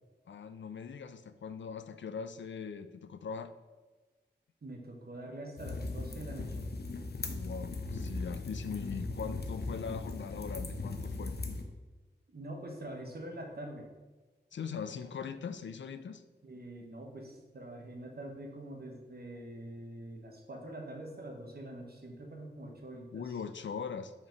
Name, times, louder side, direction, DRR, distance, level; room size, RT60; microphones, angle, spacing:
voice 1, 0.3-3.5 7.3-11.4 14.5-16.2 23.1-24.1, left 6 dB, 85° left, 11 dB, 0.4 m, -41 dB
voice 2, 4.6-6.7 12.3-13.9 16.4-23.4, right 1 dB, 60° right, 2 dB, 1.1 m, -45 dB
sound 1, 5.6-11.6, left 3 dB, 60° left, 0.7 m, -38 dB
5.7 x 4.9 x 4.4 m, 1.2 s
wide cardioid pair, 80°, 19 cm